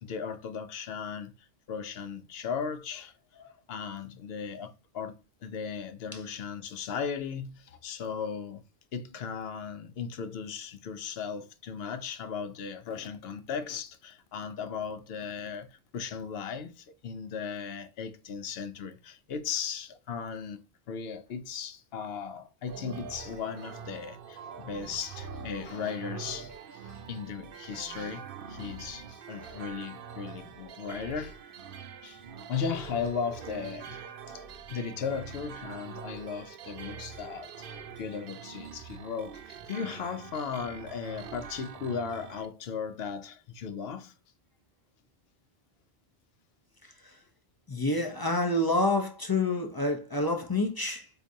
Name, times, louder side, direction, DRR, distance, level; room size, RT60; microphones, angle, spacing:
voice 1, 0.0-3.1 3.7-8.6 8.9-20.6 20.9-31.4 32.0-32.2 32.5-34.0 34.3-34.4 34.7-37.7 38.0-44.1, left 6 dB, 70° left, 0.8 m, -37 dB
sound 1, 22.7-42.5, right 6 dB, 65° right, 0.7 m, -44 dB
voice 2, 46.8-47.2 47.7-51.1, left 2 dB, 30° left, 0.4 m, -28 dB
4.7 x 2.6 x 2.6 m
omnidirectional pair, 1.1 m